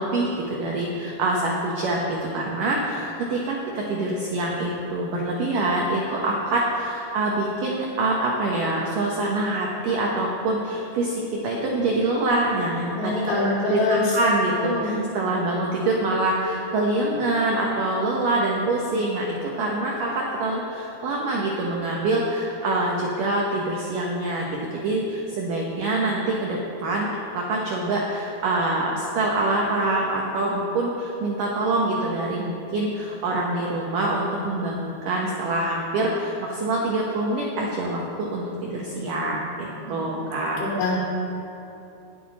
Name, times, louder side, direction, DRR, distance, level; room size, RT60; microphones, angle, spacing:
voice 1, 0.0-13.4 13.6-24.5 24.8-27.1 27.3-40.6, right 2 dB, 75° right, -2 dB, 2.0 m, -25 dB
voice 2, 12.9-14.2 14.6-14.9 39.8-40.1 40.6-41.0, left 3 dB, 65° left, -4 dB, 5.1 m, -25 dB
20.0 x 9.3 x 4.2 m, 2.8 s
omnidirectional pair, 5.5 m